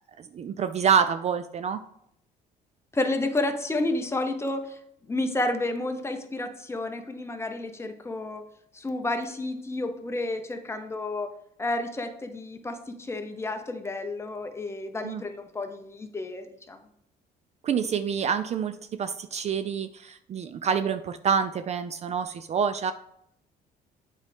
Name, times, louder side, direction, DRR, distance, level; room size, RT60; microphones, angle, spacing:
voice 1, 0.2-1.8 15.0-15.2 17.6-22.9, right 7 dB, 40° right, 11 dB, 0.4 m, -27 dB
voice 2, 2.9-4.8 5.1-8.4 8.7-11.3 11.6-16.8, left 2 dB, 15° left, 6 dB, 0.9 m, -31 dB
8.0 x 4.7 x 3.5 m, 0.74 s
cardioid pair, 110°, 17 cm